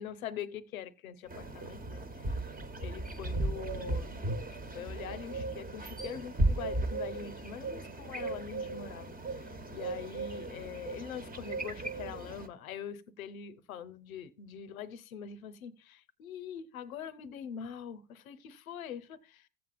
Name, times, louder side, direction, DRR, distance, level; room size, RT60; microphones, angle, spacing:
voice 1, 0.0-2.4 2.8-4.2 4.7-19.5, left 8 dB, 90° left, 0.7 m, -44 dB
sound 1, 1.3-12.5, right 2 dB, 20° right, 1.1 m, -36 dB
16.0 x 7.7 x 2.4 m
hypercardioid pair, 70°, 40 cm